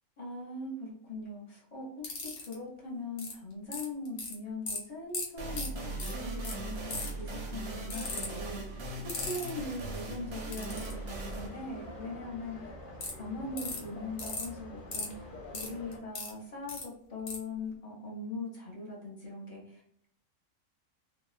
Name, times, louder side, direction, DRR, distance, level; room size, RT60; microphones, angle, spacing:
voice 1, 0.2-8.8 9.2-12.6 13.2-20.1, left 2 dB, 30° left, -4 dB, 0.8 m, -41 dB
sound 1, 2.0-2.5 3.2-3.3 3.7-4.3 4.7-4.8 5.1-5.3 5.5-5.7 6.0-6.1 6.4-6.5 6.9-7.2 7.9-8.3 9.1-9.5 10.5-10.9 13.0-13.1 13.6-13.8 14.2-14.5 14.9-15.1 15.5-16.3 16.7-16.8 17.3-17.4, left 4 dB, 90° left, 1.4 m, -36 dB
sound 2, 5.4-12.8, right 2 dB, 60° right, 0.7 m, -39 dB
sound 3, 10.5-16.0, left 1 dB, 70° left, 0.5 m, -47 dB
2.8 x 2.2 x 2.4 m, 0.67 s
omnidirectional pair, 1.6 m